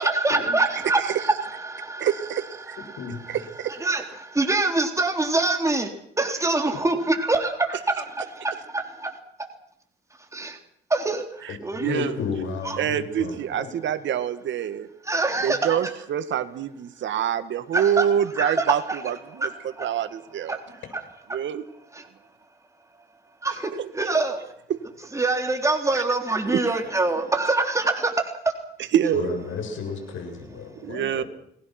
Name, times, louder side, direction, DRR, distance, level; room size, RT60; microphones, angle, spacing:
voice 1, 0.0-2.1 2.7-3.4 3.7-5.9 6.2-9.2 10.3-10.6 10.9-11.9 12.6-12.8 15.1-15.8 17.7-18.1 18.4-19.0 19.4-19.9 20.5-20.8 23.4-24.4 25.1-28.3, right 2 dB, 15° right, 4 dB, 3.6 m, -25 dB
voice 2, 2.0-2.8 3.3-3.8 11.4-12.2 12.8-14.9 15.4-19.5 19.8-20.6 21.3-21.6 24.7-24.8 25.9-26.0 26.5-26.6 28.9-29.4 30.8-31.2, right 9 dB, 70° right, 10 dB, 2.1 m, -26 dB
voice 3, 11.5-13.7 29.1-31.3, left 5 dB, 75° left, 5 dB, 7.4 m, -33 dB
29.5 x 20.0 x 6.2 m, 0.70 s
cardioid pair, 90°, 20 cm